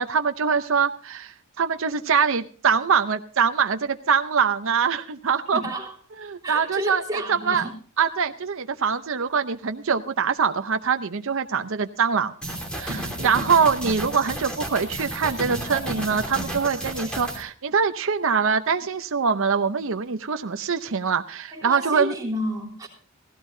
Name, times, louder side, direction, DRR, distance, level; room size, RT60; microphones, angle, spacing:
voice 1, 0.0-5.6 6.2-7.0 7.3-7.7 8.0-12.3 12.8-22.1, right 6 dB, 65° right, 0.7 m, -23 dB
voice 2, 5.5-5.9 6.4-7.7 21.5-22.9, equal, 15° right, 3.2 m, -31 dB
sound 1, 12.4-17.4, right 1 dB, 5° left, 3.0 m, -32 dB
17.0 x 16.0 x 2.7 m
head